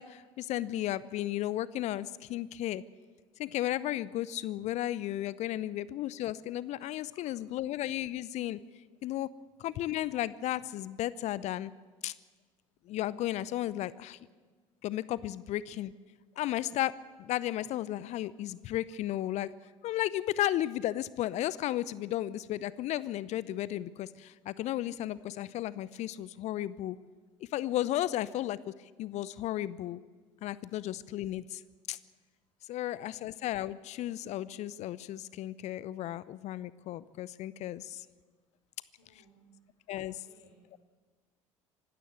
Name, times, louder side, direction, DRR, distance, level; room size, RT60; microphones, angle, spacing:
voice 1, 0.0-2.8 3.4-8.6 9.0-9.3 9.6-11.7 12.0-12.1 12.9-14.2 14.8-15.9 16.4-19.5 19.8-27.0 27.5-28.7 29.0-30.0 30.4-31.6 31.9-32.0 32.7-38.0 39.9-40.3, left 13 dB, 45° left, 19 dB, 0.7 m, -34 dB
voice 2, 38.8-39.4 40.1-40.8, equal, 70° left, -1 dB, 5.3 m, -64 dB
25.5 x 13.0 x 8.8 m, 1.4 s
figure-of-eight pair, 60°, 16 cm